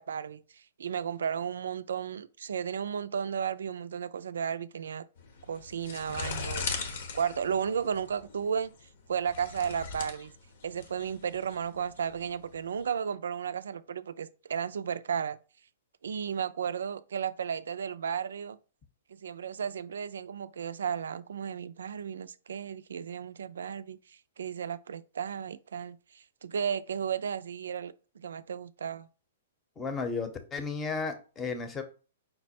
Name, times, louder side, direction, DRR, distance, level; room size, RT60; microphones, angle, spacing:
voice 1, 0.0-5.0 5.5-6.7 7.1-10.3 10.6-15.4 16.0-18.6 19.1-29.1, right 7 dB, 80° right, 0.3 m, -34 dB
sound 1, 5.2-12.8, left 5 dB, 60° left, 0.9 m, -40 dB
voice 2, 29.8-31.8, left 4 dB, 20° left, 0.8 m, -34 dB
5.1 x 2.1 x 4.2 m
hypercardioid pair, 135°, 0 cm